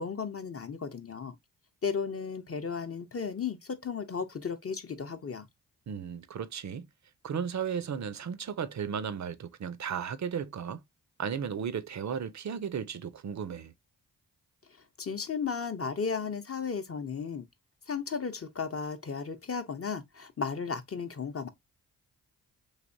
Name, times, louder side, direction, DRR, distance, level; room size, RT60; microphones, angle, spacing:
voice 1, 0.0-1.4 1.8-5.5 15.0-17.5 17.9-21.5, left 5 dB, 35° left, 0.7 m, -34 dB
voice 2, 5.9-6.9 7.2-10.8 11.2-13.7, right 7 dB, 40° right, 0.6 m, -35 dB
3.3 x 2.7 x 2.6 m
supercardioid pair, 40°, 42 cm